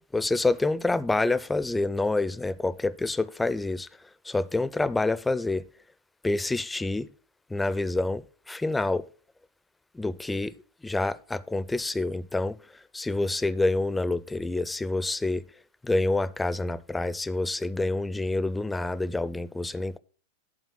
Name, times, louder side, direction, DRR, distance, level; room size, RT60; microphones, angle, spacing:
voice 1, 0.1-3.9 4.3-5.7 6.2-7.1 7.5-9.0 9.9-10.5 10.8-12.6 12.9-15.5 15.8-20.0, left 2 dB, 10° left, 0.4 m, -27 dB
11.5 x 4.3 x 6.1 m
figure-of-eight pair, 90°, 0 cm